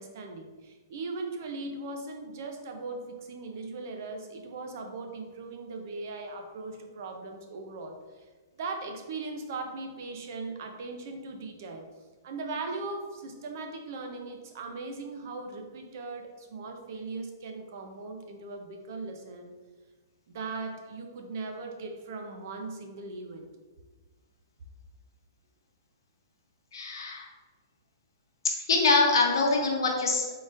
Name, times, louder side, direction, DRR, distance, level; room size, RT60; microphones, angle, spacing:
voice 1, 0.0-8.0 8.6-11.8 12.2-19.5 20.3-23.5, right 3 dB, 45° right, 4 dB, 0.5 m, -39 dB
voice 2, 26.7-27.3 28.7-30.3, left 3 dB, 80° left, 1 dB, 0.9 m, -24 dB
3.9 x 3.7 x 2.5 m, 1.4 s
hypercardioid pair, 170°, 2 cm